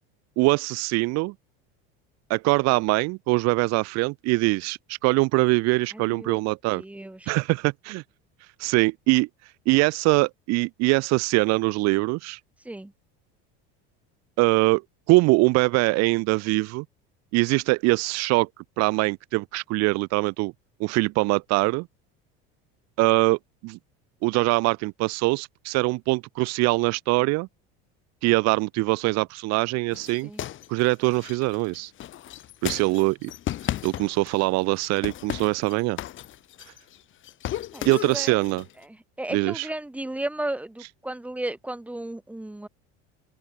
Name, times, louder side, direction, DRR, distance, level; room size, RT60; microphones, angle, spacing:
voice 1, 0.4-1.3 2.3-6.8 7.3-8.0 8.6-9.3 9.7-12.4 14.4-14.8 15.1-16.8 17.3-18.5 18.8-20.5 20.8-21.9 23.0-23.8 24.2-27.5 28.2-30.3 30.7-31.9 32.6-33.3 33.8-36.0 37.8-38.6 39.3-39.7, right 24 dB, 60° right, 1.1 m, -23 dB
voice 2, 5.9-6.4 6.7-7.3 12.6-12.9 30.2-30.5 37.7-38.4 38.8-42.7, right 1 dB, 5° right, 2.7 m, -34 dB
sound 1, 29.9-34.5 34.8-37.0 37.2-38.7, left 12 dB, 45° left, 2.2 m, -35 dB
open air
supercardioid pair, 125°, 29 cm